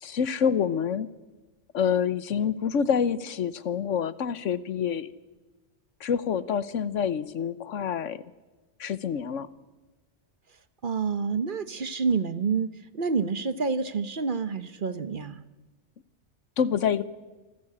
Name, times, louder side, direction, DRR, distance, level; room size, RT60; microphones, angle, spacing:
voice 1, 0.0-1.1 1.7-5.1 6.0-8.2 8.8-9.5 16.6-17.0, left 7 dB, 80° left, 16 dB, 1.3 m, -27 dB
voice 2, 10.8-15.4, right 5 dB, 45° right, 13 dB, 1.0 m, -28 dB
26.5 x 14.0 x 8.6 m, 1.2 s
omnidirectional pair, 1.3 m